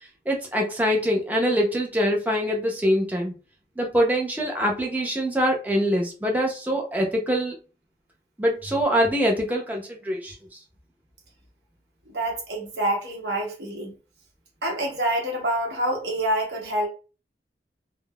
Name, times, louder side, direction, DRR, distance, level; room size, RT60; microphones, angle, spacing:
voice 1, 0.3-3.3 3.8-7.6 8.4-10.3, equal, 10° right, 0.6 m, -24 dB
voice 2, 12.1-13.9 14.6-16.9, right 1 dB, 70° right, 1.0 m, -27 dB
3.5 x 2.0 x 2.3 m
head